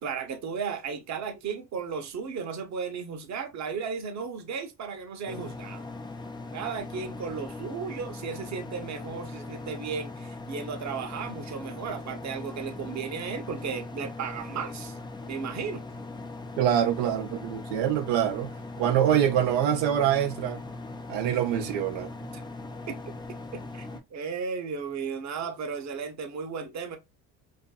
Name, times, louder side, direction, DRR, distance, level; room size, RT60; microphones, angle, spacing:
voice 1, 0.0-5.9 6.5-15.0 15.3-15.8 22.3-22.4 22.9-23.0 23.5-23.9 24.1-27.0, right 6 dB, 40° right, 0.8 m, -35 dB
sound 1, 5.3-24.0, left 2 dB, 10° left, 0.3 m, -40 dB
voice 2, 16.6-18.5 18.8-20.6 21.1-22.1, right 10 dB, 75° right, 0.6 m, -25 dB
2.5 x 2.5 x 2.3 m
supercardioid pair, 75°, 45 cm